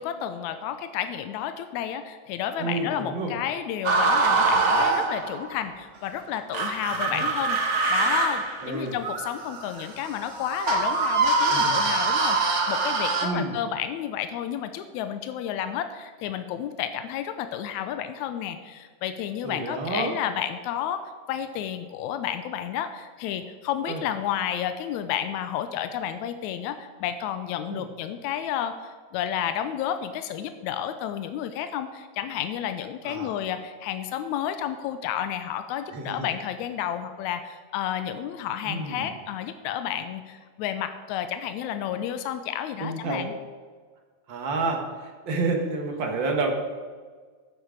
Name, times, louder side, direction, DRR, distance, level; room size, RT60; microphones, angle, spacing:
voice 1, 0.0-43.3, left 10 dB, 85° left, 9 dB, 2.0 m, -31 dB
voice 2, 2.6-3.3 6.9-7.3 8.6-9.0 11.5-11.8 13.2-13.5 19.4-20.1 23.9-24.0 27.7-27.8 33.0-33.3 35.9-36.3 38.7-39.1 42.8-43.3 44.3-46.5, right 3 dB, 45° right, 2 dB, 1.9 m, -30 dB
sound 1, 3.8-5.5 6.5-13.3, right 3 dB, 65° right, 0.7 m, -24 dB
12.0 x 9.7 x 5.1 m, 1.5 s
omnidirectional pair, 3.3 m